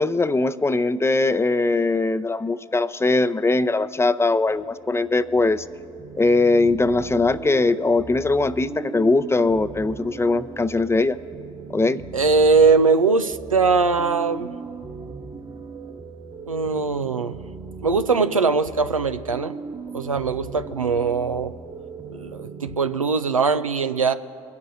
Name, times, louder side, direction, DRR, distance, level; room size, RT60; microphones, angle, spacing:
voice 1, 0.0-5.6 6.2-11.2 11.7-12.0, left 3 dB, 15° left, 14 dB, 0.6 m, -21 dB
sound 1, 4.4-22.8, right 5 dB, 25° right, 1.1 m, -38 dB
voice 2, 12.1-14.5 16.5-17.4 17.8-19.6 19.9-21.5 22.1-24.1, right 4 dB, 90° right, 9 dB, 0.4 m, -21 dB
23.0 x 10.5 x 2.6 m, 2.3 s
figure-of-eight pair, 50°, 17 cm